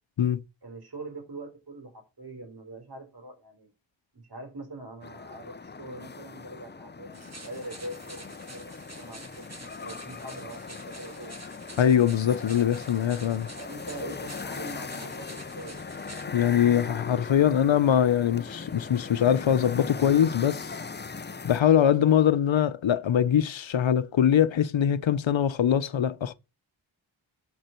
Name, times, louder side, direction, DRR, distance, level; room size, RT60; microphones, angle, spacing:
voice 1, 0.6-3.7 4.1-9.4 9.8-11.3 13.6-15.8, right 2 dB, 55° right, 4.2 m, -43 dB
sound 1, 5.0-21.6, left 4 dB, 25° left, 0.6 m, -39 dB
sound 2, 7.1-16.3, right 2 dB, 35° right, 1.8 m, -48 dB
voice 2, 11.8-13.5 16.3-20.7 21.4-26.3, left 9 dB, 75° left, 0.9 m, -22 dB
12.0 x 5.4 x 4.5 m
wide cardioid pair, 70°, 46 cm